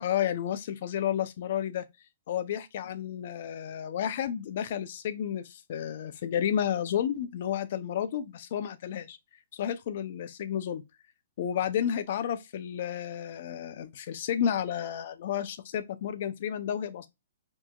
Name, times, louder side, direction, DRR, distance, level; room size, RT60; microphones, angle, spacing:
voice 1, 0.0-1.9 2.3-9.2 9.5-10.8 11.4-17.1, left 9 dB, 55° left, 0.5 m, -31 dB
4.5 x 2.9 x 2.2 m
hypercardioid pair, 150°, 0 cm